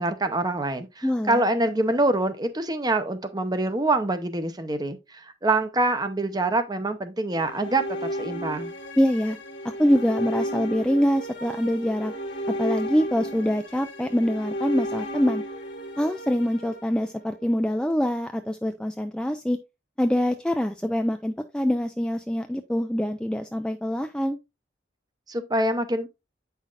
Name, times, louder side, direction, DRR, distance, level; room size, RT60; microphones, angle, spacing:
voice 1, 0.0-5.0 5.4-8.7 25.3-26.1, right 2 dB, 20° right, 0.7 m, -25 dB
voice 2, 1.0-1.4 9.0-9.4 9.8-12.1 12.6-15.4 16.0-19.6 20.0-24.4, equal, 5° left, 0.3 m, -24 dB
sound 1, 7.3-17.5, equal, 75° left, 1.6 m, -33 dB
8.6 x 5.7 x 2.4 m
head